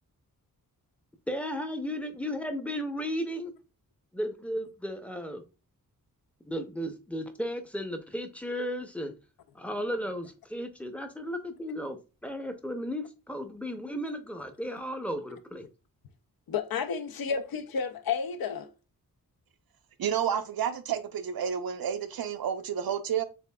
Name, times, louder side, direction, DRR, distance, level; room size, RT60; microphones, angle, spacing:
voice 1, 1.3-3.5 4.1-5.4 6.4-9.1 9.5-15.7, equal, 5° left, 0.5 m, -34 dB
voice 2, 16.5-18.7, left 6 dB, 80° left, 0.6 m, -31 dB
voice 3, 20.0-23.2, right 8 dB, 85° right, 0.6 m, -30 dB
6.9 x 2.4 x 2.2 m
wide cardioid pair, 155°, 35 cm